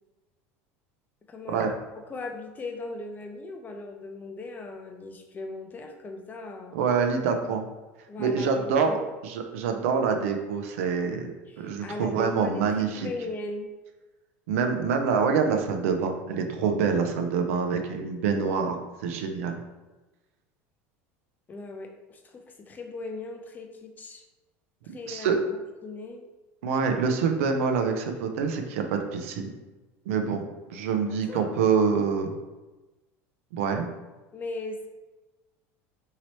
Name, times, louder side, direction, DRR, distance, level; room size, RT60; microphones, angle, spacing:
voice 1, 1.3-1.7 2.1-6.8 8.1-9.1 11.5-13.7 21.5-24.2 24.9-25.6 25.8-26.3 31.3-31.5 34.3-34.9, left 2 dB, 25° left, 3 dB, 0.5 m, -38 dB
voice 2, 6.7-7.7 8.2-9.0 9.2-11.3 11.6-13.1 14.5-19.6 24.9-25.4 26.6-29.5 30.1-30.4 30.7-32.3 33.5-33.9, right 5 dB, 80° right, 4 dB, 0.4 m, -26 dB
3.0 x 2.8 x 3.0 m, 1.1 s
supercardioid pair, 100°, 7 cm